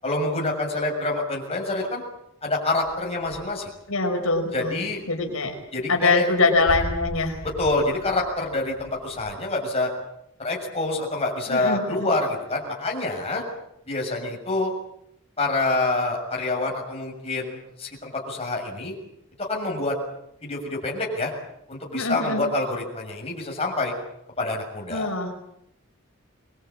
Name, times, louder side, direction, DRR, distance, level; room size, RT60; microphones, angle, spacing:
voice 1, 0.0-2.0 2.4-3.7 4.5-5.0 5.7-6.2 7.6-9.9 10.4-13.4 13.9-14.7 15.4-18.9 19.4-20.0 20.4-21.3 21.7-23.9 24.4-25.1, left 2 dB, 25° left, -1 dB, 7.0 m, -26 dB
sound 1, 2.8-3.9 4.1-9.3, right 1 dB, 70° right, 2.8 m, -38 dB
voice 2, 3.9-4.8 5.1-5.5 5.9-7.4 11.5-12.1 21.9-22.4 24.9-25.3, left 3 dB, 75° left, 2 dB, 5.1 m, -23 dB
25.5 x 21.5 x 8.6 m, 0.77 s
head